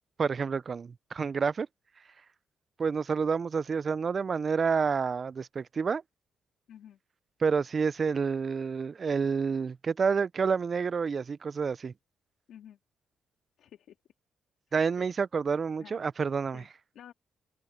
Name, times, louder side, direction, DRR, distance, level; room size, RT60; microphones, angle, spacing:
voice 1, 0.2-1.7 2.8-6.0 7.4-11.9 14.7-16.6, right 5 dB, 45° right, 0.5 m, -29 dB
voice 2, 6.7-7.0 12.5-12.8 13.6-14.0 15.0-15.1 15.8-16.0 16.5-16.7 16.9-17.1, left 10 dB, 75° left, 2.7 m, -50 dB
cardioid pair, 70°, 0 cm